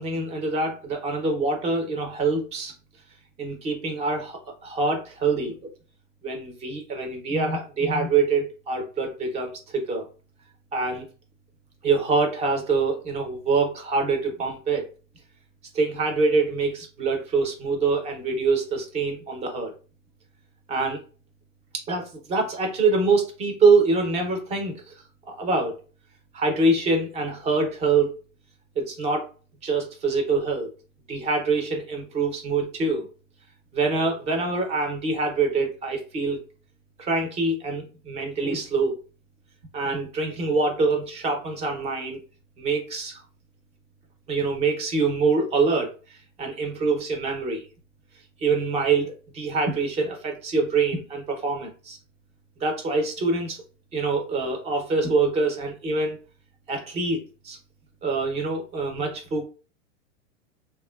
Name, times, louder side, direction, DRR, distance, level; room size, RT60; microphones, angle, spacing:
voice 1, 0.0-2.7 3.4-5.5 6.2-10.1 10.7-11.1 11.8-14.9 15.7-19.7 20.7-21.0 21.7-24.9 25.3-25.8 26.3-28.2 28.8-29.3 29.6-30.7 31.1-33.1 33.7-36.4 37.0-39.0 39.7-42.2 42.6-43.2 44.3-45.9 46.4-47.6 48.4-52.0 52.6-53.6 53.9-56.2 56.7-57.6 58.0-59.5, right 3 dB, 15° right, 3 dB, 0.5 m, -25 dB
2.9 x 2.2 x 2.2 m, 0.35 s
hypercardioid pair, 135°, 38 cm